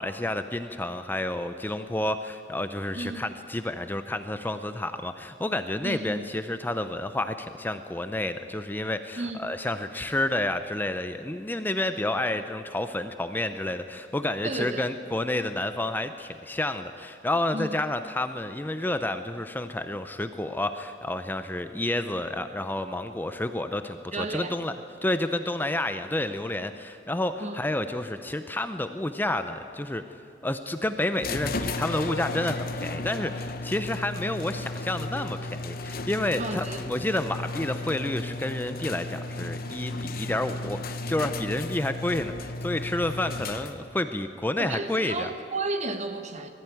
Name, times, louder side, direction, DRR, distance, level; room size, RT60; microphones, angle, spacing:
voice 1, 0.0-24.7 25.0-30.0 30.4-45.3, left 1 dB, 10° left, 9 dB, 0.5 m, -30 dB
voice 2, 2.9-3.3 5.8-6.2 9.2-9.4 14.4-14.9 17.5-17.8 24.1-24.5 27.4-27.6 36.4-37.1 44.6-46.5, right 2 dB, 40° right, 7 dB, 1.3 m, -33 dB
sound 1, 31.2-44.0, left 2 dB, 55° left, 1.0 m, -34 dB
20.0 x 14.5 x 9.2 m, 2.5 s
head